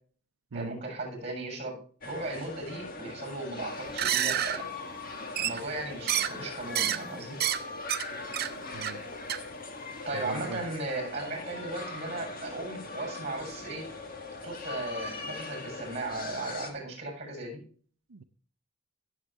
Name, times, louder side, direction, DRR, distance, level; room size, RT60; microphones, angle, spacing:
voice 1, 0.5-1.8 2.0-4.7 5.4-7.4 10.1-13.9 14.4-17.6, right 2 dB, 30° right, 2 dB, 7.2 m, -36 dB
sound 1, 2.0-16.7, left 3 dB, 45° left, 1.5 m, -40 dB
sound 2, 3.9-4.6 5.4-5.8 6.1-6.4 6.7-7.0 7.3-7.6 7.9-8.1 8.3-8.5 8.8-9.0 9.3-9.4, right 11 dB, 50° right, 0.7 m, -28 dB
voice 2, 10.1-10.6 18.1-18.2, right 4 dB, 85° right, 8 dB, 0.6 m, -40 dB
17.5 x 7.4 x 3.5 m, 0.43 s
head